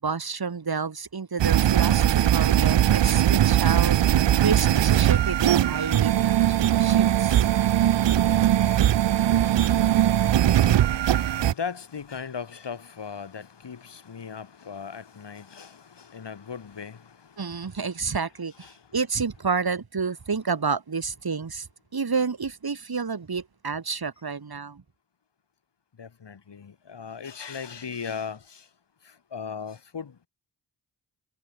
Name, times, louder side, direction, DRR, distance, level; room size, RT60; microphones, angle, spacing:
voice 1, 0.0-7.4 17.4-18.7 18.9-21.7 21.9-24.8, right 5 dB, 55° right, 5.4 m, -29 dB
sound 1, 1.4-11.5, right 11 dB, 70° right, 0.8 m, -20 dB
voice 2, 10.4-17.3 18.6-18.8 26.0-28.6 29.3-30.3, left 6 dB, 70° left, 5.8 m, -38 dB
cardioid pair, 50°, 44 cm